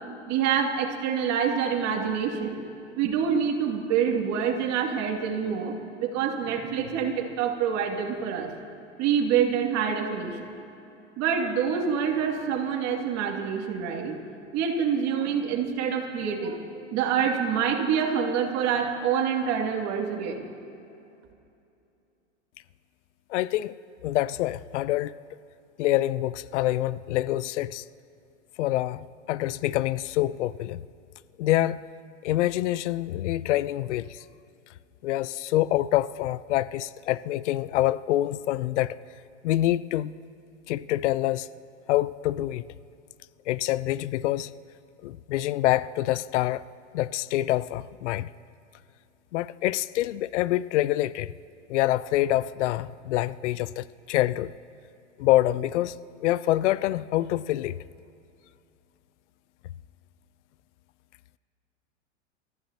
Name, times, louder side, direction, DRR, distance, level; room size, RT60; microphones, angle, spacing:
voice 1, 0.3-2.6 3.0-8.5 9.0-10.5 11.2-14.1 14.5-20.5, right 7 dB, 45° right, 1 dB, 2.5 m, -26 dB
voice 2, 23.3-23.8 24.0-25.1 25.8-27.8 28.6-30.8 31.4-31.8 32.2-34.2 35.0-39.0 39.4-40.1 40.7-41.5 41.9-42.6 43.5-44.5 45.0-46.6 46.9-48.3 49.3-51.3 51.7-54.5 55.2-55.9 56.2-57.8, left 15 dB, 70° left, 18 dB, 0.5 m, -26 dB
28.5 x 15.0 x 2.9 m, 2.7 s
hypercardioid pair, 105°, 37 cm